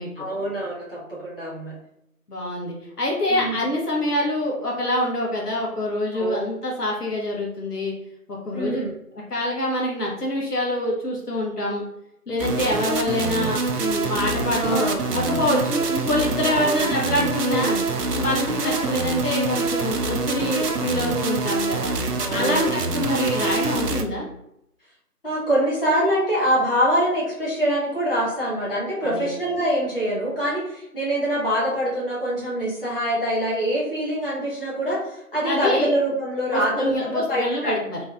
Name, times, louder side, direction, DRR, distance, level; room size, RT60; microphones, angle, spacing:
voice 1, 0.2-1.7 3.3-3.6 6.1-6.4 8.5-8.9 14.6-15.1 16.4-16.9 17.4-17.8 22.2-22.9 25.2-37.8, equal, 35° left, -8 dB, 1.1 m, -24 dB
voice 2, 2.3-7.9 8.3-8.8 9.3-11.8 12.3-17.7 18.1-21.9 22.3-24.2 29.0-29.3 35.4-35.9 36.5-38.0, left 1 dB, 80° left, -3 dB, 1.2 m, -25 dB
sound 1, 12.4-24.0, right 3 dB, 85° right, 0.6 m, -25 dB
3.3 x 3.1 x 2.4 m, 0.79 s
figure-of-eight pair, 175°, 46 cm